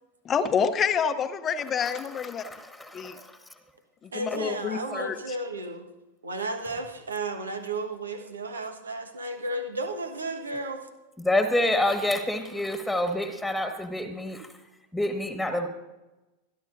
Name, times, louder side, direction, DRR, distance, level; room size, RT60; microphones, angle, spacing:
voice 1, 0.2-2.5 2.9-3.2 4.0-5.2, left 7 dB, 25° left, 9 dB, 0.8 m, -27 dB
voice 2, 1.8-3.4 11.2-14.5 14.9-15.7, left 1 dB, ahead, 7 dB, 1.6 m, -28 dB
voice 3, 4.1-5.9 6.2-10.9, right 2 dB, 75° right, 7 dB, 1.4 m, -33 dB
24.5 x 11.5 x 2.6 m, 1.0 s
figure-of-eight pair, 90°, 0 cm